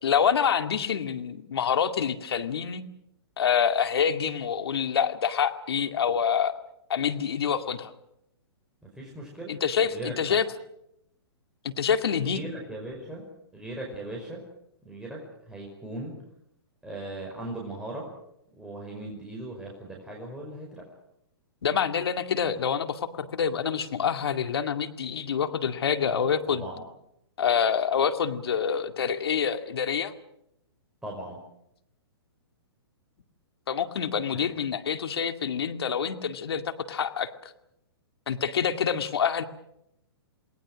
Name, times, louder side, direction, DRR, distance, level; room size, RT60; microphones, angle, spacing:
voice 1, 0.0-2.8 3.4-6.6 6.9-7.9 9.5-10.5 11.6-12.4 21.6-26.6 27.4-30.1 33.7-37.3 38.3-39.4, left 7 dB, 70° left, 8 dB, 2.2 m, -26 dB
voice 2, 9.0-9.6 9.9-10.4 12.2-13.2 13.5-14.4 14.8-16.1 16.8-18.1 18.6-20.9 26.5-26.8 31.0-31.4 34.3-34.4, right 1 dB, 5° right, -2 dB, 5.3 m, -38 dB
28.5 x 19.5 x 6.3 m, 0.79 s
hypercardioid pair, 125°, 14 cm